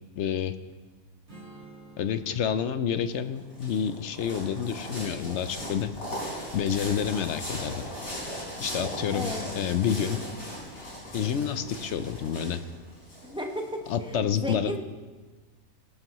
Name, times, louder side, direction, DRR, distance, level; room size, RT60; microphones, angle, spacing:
voice 1, 0.2-0.5 2.0-5.9 6.5-7.8 8.6-10.2 11.1-12.6 13.9-14.7, left 8 dB, 60° left, 11 dB, 0.9 m, -28 dB
Strum, 1.3-6.6, right 2 dB, 50° right, 2.5 m, -54 dB
sound 1, 3.1-13.9, equal, 80° left, 5.2 m, -38 dB
voice 2, 9.1-9.4 13.2-14.8, equal, 5° right, 1 dB, 1.0 m, -34 dB
19.5 x 11.5 x 3.1 m, 1.3 s
omnidirectional pair, 1.5 m